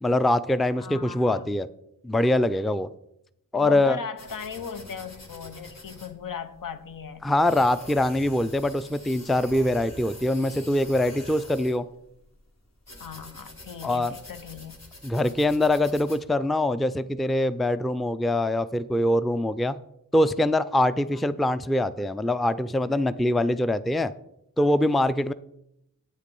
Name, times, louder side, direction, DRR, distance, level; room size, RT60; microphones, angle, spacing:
voice 1, 0.0-1.7 2.0-2.9 3.5-4.0 7.2-11.9 13.8-14.1 15.0-19.8 20.1-24.1 24.6-25.3, left 1 dB, ahead, 14 dB, 0.4 m, -23 dB
voice 2, 0.8-1.5 3.6-7.3 13.0-14.8 21.1-21.2, left 7 dB, 70° left, 10 dB, 0.9 m, -38 dB
sound 1, 4.2-16.2, left 1 dB, 50° left, 2.3 m, -46 dB
8.5 x 8.4 x 5.3 m, 0.80 s
cardioid pair, 60°, 34 cm